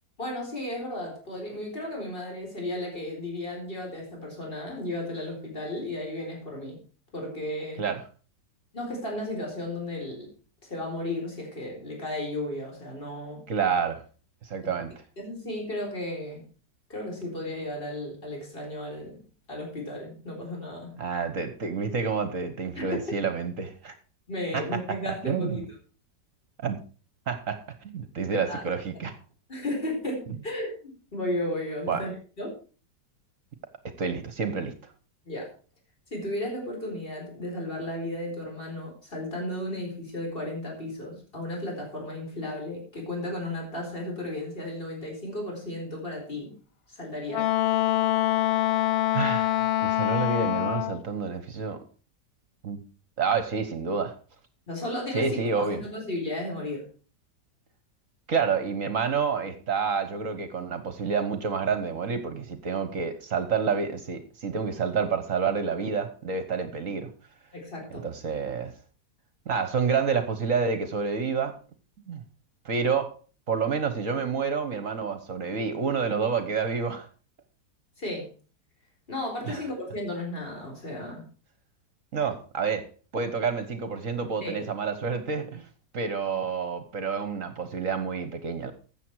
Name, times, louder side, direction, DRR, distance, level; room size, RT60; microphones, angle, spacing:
voice 1, 0.2-6.8 7.1-7.9 8.7-10.3 10.6-13.4 15.2-16.4 16.9-19.2 19.5-20.9 22.7-23.0 24.3-25.7 28.3-28.6 29.5-32.1 32.4-32.5 35.2-35.5 36.1-46.5 46.9-47.5 54.7-56.9 67.5-68.1 78.0-78.3 79.1-81.2 84.4-84.6, left 1 dB, 30° left, 4.4 m, -34 dB
voice 2, 13.5-14.0 14.4-14.9 21.0-23.9 24.5-24.6 25.1-25.6 26.6-26.8 27.3-29.1 31.9-32.0 34.0-34.7 49.1-51.8 52.6-52.8 53.2-54.1 55.1-55.8 58.3-67.1 67.9-68.7 69.5-71.5 72.1-72.2 72.6-73.1 73.5-77.1 79.5-79.6 82.1-82.9 83.1-85.6 85.9-88.7, right 5 dB, 50° right, 1.5 m, -28 dB
Wind instrument woodwind instrument, 47.3-51.0, left 14 dB, 70° left, 0.6 m, -25 dB
13.5 x 8.2 x 4.7 m
omnidirectional pair, 1.8 m